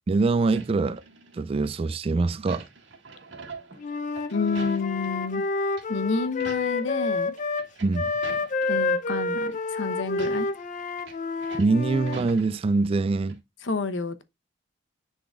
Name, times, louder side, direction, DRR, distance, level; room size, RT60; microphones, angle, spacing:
voice 1, 0.1-1.0 1.3-2.7 7.8-8.1 11.6-13.4, right 3 dB, 30° right, 0.3 m, -24 dB
sound 1, 0.5-1.7 2.0-5.4 5.7-5.9 6.2-6.9 7.2-8.9 9.4-9.5 10.1-13.0 13.3-13.4, right 4 dB, 70° right, 2.0 m, -45 dB
Wind instrument woodwind instrument, 3.8-7.7 7.9-12.3, left 3 dB, 40° left, 0.6 m, -29 dB
voice 2, 4.3-5.4 5.9-7.3 8.7-10.5 13.6-14.2, left 3 dB, 80° left, 0.9 m, -29 dB
10.0 x 3.9 x 2.4 m
head